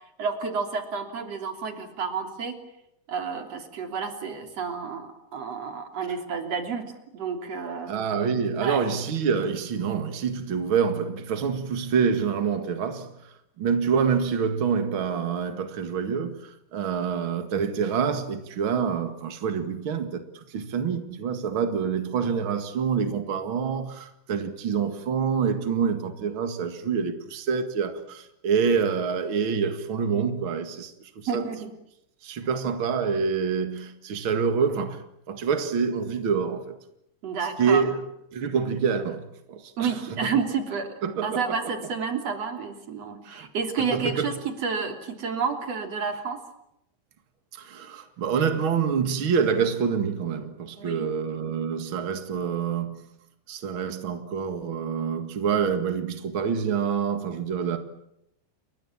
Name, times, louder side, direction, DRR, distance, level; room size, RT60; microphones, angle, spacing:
voice 1, 0.2-2.6 3.1-8.0 8.6-8.8 31.3-31.7 37.2-37.8 39.8-40.9 41.2-46.4 50.8-51.1, right 5 dB, 35° right, 3.6 m, -30 dB
voice 2, 7.9-31.4 32.2-36.8 37.6-38.0 38.3-40.3 41.0-41.7 43.2-43.5 43.9-44.3 47.5-53.0 53.5-57.8, right 6 dB, 75° right, 1.1 m, -27 dB
30.0 x 23.0 x 7.4 m
omnidirectional pair, 5.6 m